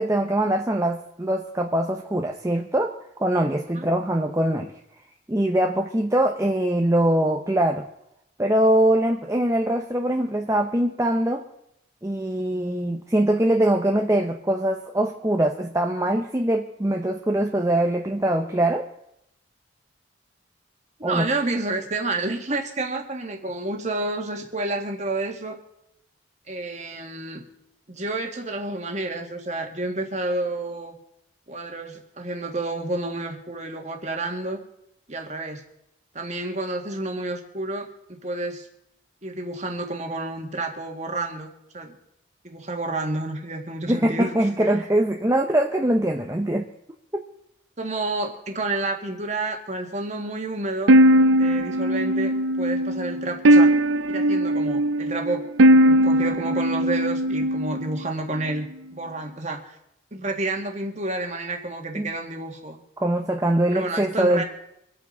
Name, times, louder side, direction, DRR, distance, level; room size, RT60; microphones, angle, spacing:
voice 1, 0.0-4.7 5.3-7.8 8.4-11.4 12.0-18.8 21.0-21.2 43.9-46.7 62.0-62.1 63.0-64.4, right 1 dB, 15° right, 2 dB, 0.7 m, -22 dB
voice 2, 21.0-25.6 26.5-27.4 27.9-30.9 31.5-34.6 35.1-35.6 36.1-38.7 39.2-41.5 41.7-41.9 42.4-44.3 47.8-50.9 51.3-53.7 54.1-58.6 58.9-59.7 60.1-62.8 63.7-64.4, right 2 dB, 35° right, 3 dB, 1.8 m, -30 dB
sound 1, 50.9-58.0, right 1 dB, 80° right, 0.6 m, -19 dB
26.0 x 8.7 x 3.8 m, 0.80 s
head